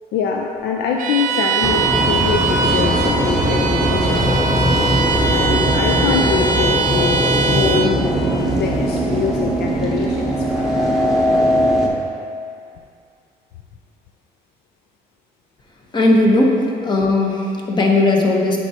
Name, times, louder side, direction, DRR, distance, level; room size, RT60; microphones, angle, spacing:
voice 1, 0.1-11.7, left 6 dB, 75° left, 1 dB, 0.5 m, -25 dB
Bowed string instrument, 1.0-8.0, right 4 dB, 50° right, 0.5 m, -22 dB
sound 1, 1.6-11.9, equal, ahead, 1.0 m, -19 dB
voice 2, 15.9-18.6, left 2 dB, 25° left, 0 dB, 1.0 m, -16 dB
9.7 x 4.7 x 2.9 m, 2.4 s
cardioid pair, 110°, 17 cm